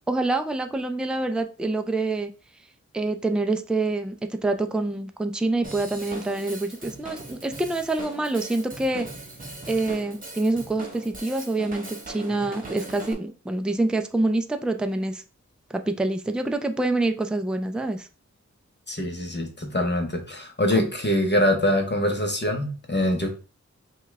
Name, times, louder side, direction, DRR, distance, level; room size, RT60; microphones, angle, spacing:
voice 1, 0.1-2.3 2.9-9.1 9.7-15.2 15.7-18.1 20.8-20.9, right 2 dB, 5° right, 7 dB, 0.4 m, -26 dB
Drum kit / Drum, 5.6-13.1, right 2 dB, 30° right, 1.2 m, -40 dB
voice 2, 18.9-23.3, left 1 dB, 35° left, 2 dB, 0.9 m, -24 dB
5.5 x 2.4 x 3.2 m, 0.35 s
wide cardioid pair, 70°, 29 cm